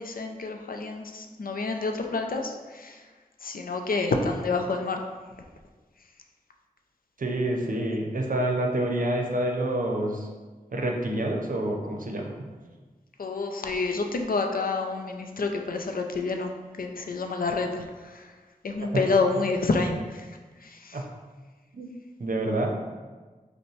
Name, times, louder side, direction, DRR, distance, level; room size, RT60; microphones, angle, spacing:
voice 1, 0.0-3.0 3.4-5.0 13.2-16.5 16.8-18.3 18.6-20.3 20.6-21.0, left 3 dB, 70° left, 4 dB, 0.4 m, -28 dB
voice 2, 7.2-10.3 10.7-12.5 18.9-19.0 20.9-21.1 21.7-21.9 22.2-22.7, right 1 dB, 65° right, 1 dB, 0.6 m, -27 dB
5.3 x 2.1 x 3.1 m, 1.3 s
wide cardioid pair, 50°, 15 cm